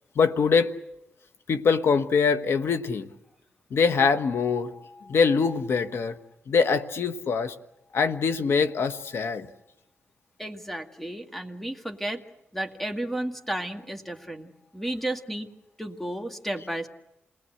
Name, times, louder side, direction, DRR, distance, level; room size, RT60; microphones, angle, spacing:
voice 1, 0.2-0.7 1.5-3.1 3.7-6.2 6.5-7.5 7.9-9.5, left 5 dB, 70° left, 10 dB, 1.3 m, -23 dB
voice 2, 10.4-12.2 12.5-15.5 15.8-16.9, right 1 dB, 5° left, 5 dB, 1.9 m, -33 dB
28.0 x 19.5 x 7.9 m, 0.86 s
cardioid pair, 80°, 4 cm